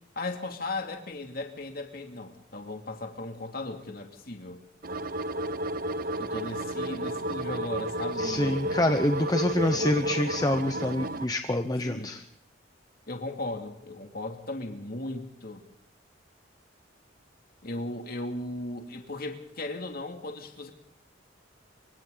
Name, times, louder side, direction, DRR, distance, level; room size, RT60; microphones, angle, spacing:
voice 1, 0.2-4.6 6.2-8.7 9.7-9.9 11.8-12.1 13.1-15.7 17.6-20.7, left 2 dB, 50° left, 4 dB, 2.7 m, -37 dB
sound 1, 4.8-11.3, right 1 dB, 45° right, 0.8 m, -32 dB
voice 2, 8.2-12.2, left 1 dB, 20° left, 7 dB, 0.9 m, -26 dB
27.0 x 25.0 x 4.0 m, 0.67 s
head